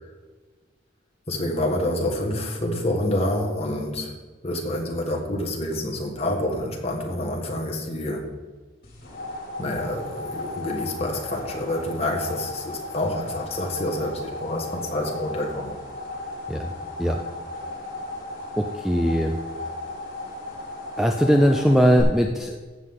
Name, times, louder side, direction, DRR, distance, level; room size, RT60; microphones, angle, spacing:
voice 1, 1.3-4.1 4.4-8.2 9.6-15.8, left 1 dB, 30° left, 0 dB, 1.7 m, -27 dB
sound 1, 8.8-22.0, left 2 dB, 50° left, 3.6 m, -35 dB
voice 2, 18.6-19.3 21.0-22.8, equal, ahead, 3 dB, 0.4 m, -20 dB
14.0 x 8.1 x 3.8 m, 1.3 s
head